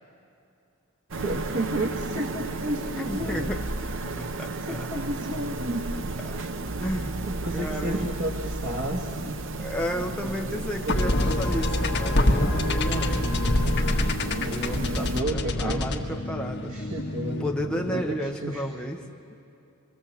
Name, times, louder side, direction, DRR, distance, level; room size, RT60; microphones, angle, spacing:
sound 1, 1.1-15.2, right 2 dB, 65° right, 0.9 m, -33 dB
voice 1, 1.2-3.5 4.7-5.8 7.2-9.4 10.2-11.0 15.1-15.9 16.7-17.5 17.9-18.6, right 1 dB, 80° right, 1 dB, 2.0 m, -32 dB
voice 2, 2.8-3.6 4.1-4.9 6.2-6.4 6.8-7.1 7.5-8.2 9.6-13.4 14.4-16.8 17.4-19.1, equal, 5° left, 0 dB, 0.9 m, -33 dB
sound 2, 10.9-18.2, left 1 dB, 55° left, 1.5 m, -26 dB
25.0 x 23.0 x 7.5 m, 2.7 s
head